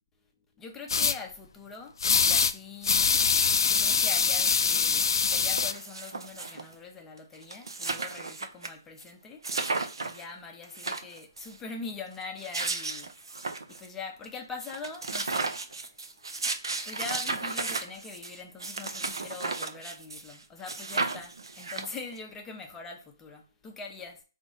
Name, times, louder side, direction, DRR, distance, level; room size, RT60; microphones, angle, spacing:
voice 1, 0.6-3.1 3.6-13.1 13.7-16.0 16.9-24.2, left 4 dB, 10° left, 0.6 m, -43 dB
sound 1, 0.9-1.2 2.0-2.5 2.8-5.7, left 5 dB, 65° left, 0.3 m, -24 dB
sound 2, 4.7-4.8 5.1-6.7 7.2-7.3 7.4-8.7 9.0-9.1 9.4-10.2 10.6-11.5 12.2-13.9 14.2-14.3 14.6-20.4 20.6-22.2, right 3 dB, 75° right, 0.7 m, -34 dB
3.9 x 2.5 x 3.8 m
figure-of-eight pair, 150°, 2 cm